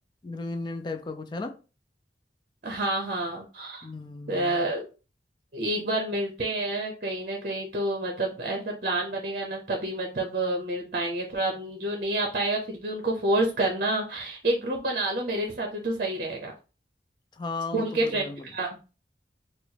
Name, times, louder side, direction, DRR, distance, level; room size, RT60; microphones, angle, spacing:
voice 1, 0.2-1.6 3.8-4.7 17.3-18.5, left 3 dB, 25° left, 0.4 m, -35 dB
voice 2, 2.6-3.9 4.3-4.9 5.5-16.5 17.7-18.8, right 1 dB, 50° right, 0.7 m, -28 dB
4.5 x 2.0 x 2.8 m
head